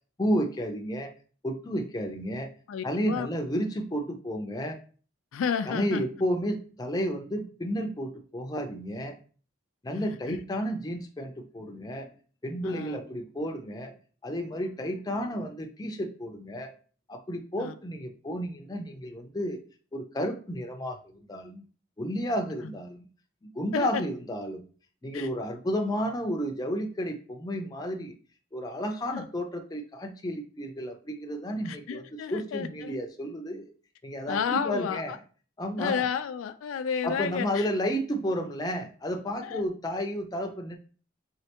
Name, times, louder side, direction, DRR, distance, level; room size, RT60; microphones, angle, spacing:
voice 1, 0.2-1.1 1.4-2.5 2.8-4.8 5.7-9.2 9.8-12.1 12.4-13.9 14.2-16.7 17.1-19.6 19.9-21.6 22.0-23.1 23.4-24.6 25.0-28.2 28.5-32.0 32.3-33.7 34.0-35.2 35.6-36.0 37.0-40.8, equal, 20° left, 0.4 m, -32 dB
voice 2, 2.7-3.3 5.3-6.0 9.9-10.4 12.6-13.0 17.6-17.7 23.7-24.0 25.1-25.3 29.1-29.2 31.6-32.9 34.3-35.0 35.8-37.7 39.4-39.6, left 7 dB, 85° left, 0.3 m, -31 dB
3.3 x 3.2 x 2.8 m
head